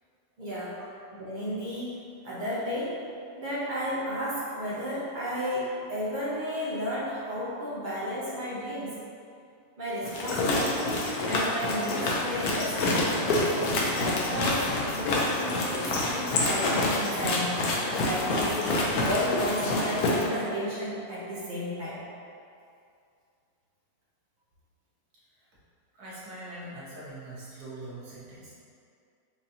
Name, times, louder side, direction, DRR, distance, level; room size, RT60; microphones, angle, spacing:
voice 1, 0.4-0.8 1.2-3.0 3.3-9.0 9.8-12.8 13.3-17.7 18.0-22.0, equal, 50° right, -8 dB, 0.6 m, -33 dB
sound 1, 10.0-20.3, left 2 dB, 80° left, 1.1 m, -27 dB
voice 2, 25.9-28.5, right 1 dB, 90° right, -8 dB, 1.5 m, -42 dB
4.6 x 2.6 x 2.7 m, 2.4 s
omnidirectional pair, 1.6 m